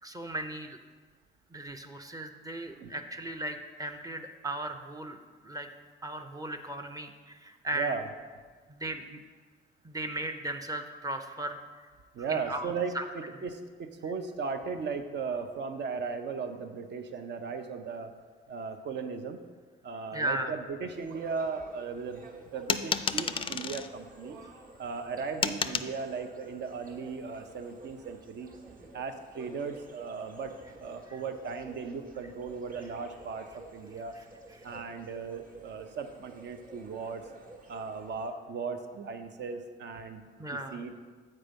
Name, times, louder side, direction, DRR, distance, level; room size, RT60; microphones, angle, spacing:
voice 1, 0.0-0.8 1.5-5.2 5.4-5.7 6.0-7.9 8.7-9.2 9.8-11.6 12.3-13.0 20.1-20.5 31.1-31.2 40.4-40.8, right 1 dB, 20° right, 6 dB, 0.6 m, -36 dB
voice 2, 7.7-8.1 12.1-12.9 13.4-18.1 18.5-19.4 19.8-24.4 24.8-28.5 28.9-30.5 30.8-34.1 34.6-37.2 37.7-40.3 40.7-40.9, right 5 dB, 60° right, 7 dB, 0.7 m, -37 dB
sound 1, 20.9-38.3, right 2 dB, 45° right, 1.1 m, -52 dB
sound 2, 22.7-23.9 25.4-25.9, left 6 dB, 25° left, 0.3 m, -30 dB
7.5 x 4.5 x 5.2 m, 1.5 s
cardioid pair, 90°, 20 cm